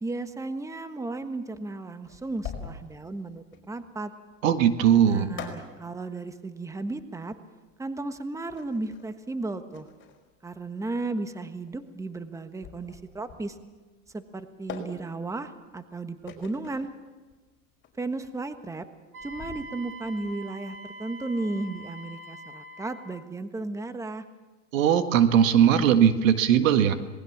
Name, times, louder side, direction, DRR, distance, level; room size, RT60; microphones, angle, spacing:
voice 1, 0.0-4.1 5.0-7.3 7.8-9.9 10.4-13.6 14.1-16.9 18.0-18.9 19.2-24.2, right 2 dB, 10° right, 9 dB, 1.4 m, -34 dB
sound 1, 2.0-20.3, left 6 dB, 30° left, 5.1 m, -45 dB
voice 2, 4.4-5.3 24.7-26.9, right 9 dB, 80° right, 9 dB, 1.8 m, -19 dB
Wind instrument woodwind instrument, 19.1-23.3, right 1 dB, 35° right, 2.5 m, -44 dB
26.0 x 20.0 x 7.3 m, 1.3 s
hypercardioid pair, 110°, 39 cm